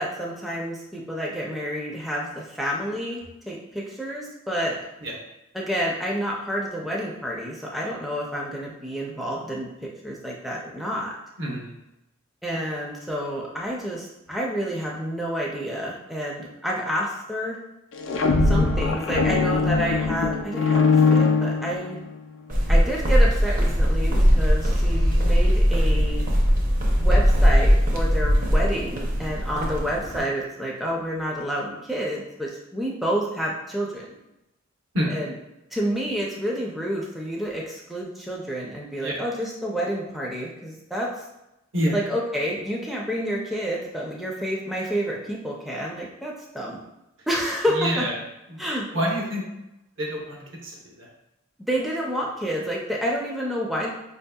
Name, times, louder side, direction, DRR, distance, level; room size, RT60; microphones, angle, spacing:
voice 1, 0.0-4.8 5.5-11.1 12.4-17.6 18.4-22.0 22.7-26.3 26.9-34.2 35.1-35.3 35.7-41.2 41.9-46.8 47.3-48.1 48.6-48.9 51.6-53.9, equal, ahead, -3 dB, 0.4 m, -29 dB
voice 2, 11.4-11.8 12.5-12.6 34.9-35.1 39.0-39.2 41.7-41.9 47.7-48.2 48.5-48.6 48.9-49.4 50.0-51.1, equal, 70° right, -2 dB, 0.9 m, -27 dB
sound 1, 17.9-22.2, left 4 dB, 70° left, 0.4 m, -21 dB
sound 2, 22.5-30.2, equal, 45° right, 0.6 m, -20 dB
4.8 x 2.7 x 2.2 m, 0.92 s
head